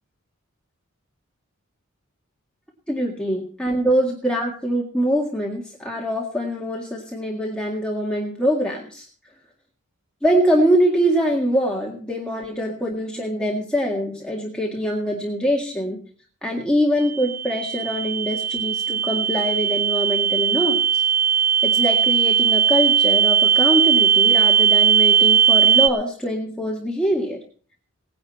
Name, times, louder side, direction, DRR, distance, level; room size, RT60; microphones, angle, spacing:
voice 1, 2.9-9.1 10.2-16.0 16.4-21.0 21.6-27.4, equal, 5° left, -2 dB, 1.9 m, -23 dB
sound 1, 17.0-25.9, right 8 dB, 15° right, 0.5 m, -18 dB
18.5 x 10.5 x 4.2 m, 0.43 s
head